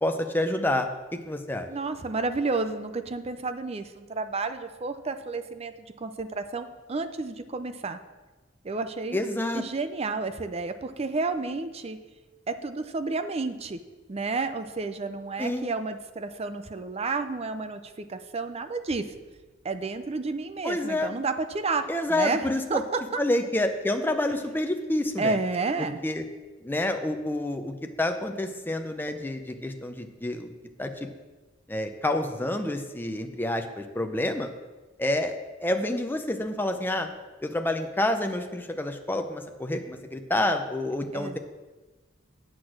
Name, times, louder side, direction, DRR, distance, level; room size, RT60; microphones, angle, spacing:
voice 1, 0.0-1.7 9.1-9.6 15.4-15.7 20.6-21.2 21.9-22.8 23.2-25.3 25.8-26.2 26.6-30.5 30.8-30.9 31.7-34.5 35.0-37.1 37.4-41.4, left 1 dB, 10° left, 5 dB, 0.6 m, -28 dB
voice 2, 1.7-8.0 8.6-9.2 9.5-12.0 12.5-13.8 14.1-19.1 19.6-23.2 25.2-26.0 41.1-41.4, right 3 dB, 35° right, 9 dB, 0.5 m, -31 dB
8.3 x 6.2 x 6.3 m, 1.2 s
head